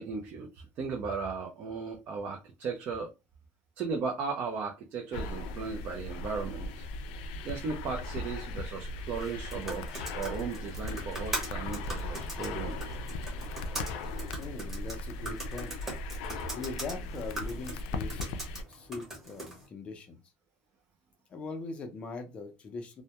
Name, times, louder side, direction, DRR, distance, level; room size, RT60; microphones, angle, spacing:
voice 1, 0.0-3.1 3.8-6.8 7.4-13.0, right 5 dB, 35° right, 0.4 m, -36 dB
sound 1, 5.1-18.6, left 2 dB, 85° left, 0.4 m, -38 dB
sound 2, 9.1-19.7, right 1 dB, 5° right, 0.8 m, -42 dB
voice 2, 14.3-15.8 16.5-20.2 21.3-23.0, left 4 dB, 20° left, 0.5 m, -41 dB
2.1 x 2.1 x 2.8 m
cardioid pair, 170°, 5 cm